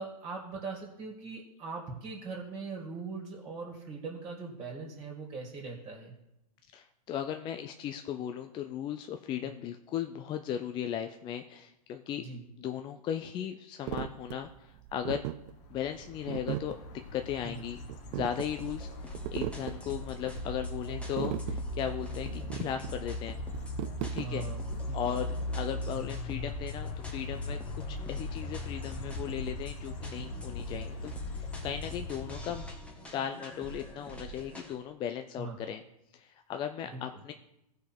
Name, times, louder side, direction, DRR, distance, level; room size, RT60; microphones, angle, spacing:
voice 1, 0.0-6.1 9.4-9.5 12.2-12.4 17.4-17.6 24.2-25.2 30.7-30.8 35.4-35.6 36.9-37.2, right 4 dB, 25° right, 0 dB, 2.2 m, -41 dB
voice 2, 6.7-12.2 12.6-15.3 15.7-16.8 17.1-17.8 18.1-23.4 24.1-24.4 24.9-32.7 33.1-35.8 36.1-37.3, left 9 dB, 20° left, 7 dB, 0.5 m, -37 dB
sound 1, 13.9-24.8, right 14 dB, 40° right, 0.5 m, -39 dB
sound 2, 15.5-33.1, left 2 dB, 45° left, 1.4 m, -39 dB
sound 3, 18.3-34.8, right 1 dB, 5° left, 1.3 m, -46 dB
15.5 x 5.2 x 4.5 m, 0.87 s
hypercardioid pair, 120°, 21 cm